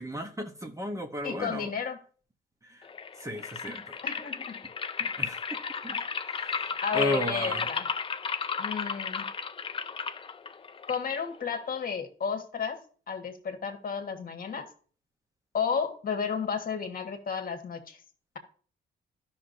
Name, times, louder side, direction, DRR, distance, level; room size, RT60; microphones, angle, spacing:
voice 1, 0.0-1.7 3.2-3.8 5.0-5.4 5.8-6.0 6.9-7.6, left 1 dB, 15° right, 5 dB, 0.9 m, -33 dB
voice 2, 1.2-2.0 4.0-4.6 6.8-7.9 8.6-9.2 10.9-12.8 13.1-14.7 15.5-18.0, left 6 dB, 45° left, 5 dB, 1.3 m, -32 dB
sound 1, 2.8-11.9, left 5 dB, 25° left, 0.4 m, -34 dB
12.0 x 5.7 x 2.6 m, 0.42 s
cardioid pair, 90°, 20 cm